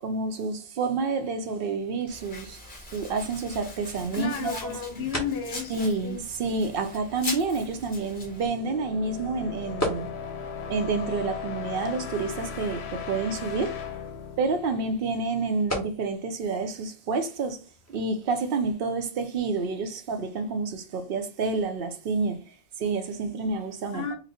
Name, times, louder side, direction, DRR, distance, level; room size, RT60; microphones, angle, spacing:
voice 1, 0.0-2.6 2.9-4.8 5.7-10.1 10.7-13.8 14.4-17.6 17.9-22.4 22.8-24.0, right 4 dB, 65° right, 0.8 m, -29 dB
sound 1, 0.9-18.5, equal, 15° left, 1.0 m, -42 dB
Domestic sounds home sounds, 2.1-8.5, left 2 dB, 50° left, 1.5 m, -41 dB
voice 2, 4.1-6.2 23.9-24.1, left 6 dB, 65° left, 1.2 m, -33 dB
sound 2, 8.0-15.7, left 6 dB, 90° left, 0.9 m, -38 dB
3.9 x 2.2 x 4.1 m
omnidirectional pair, 1.1 m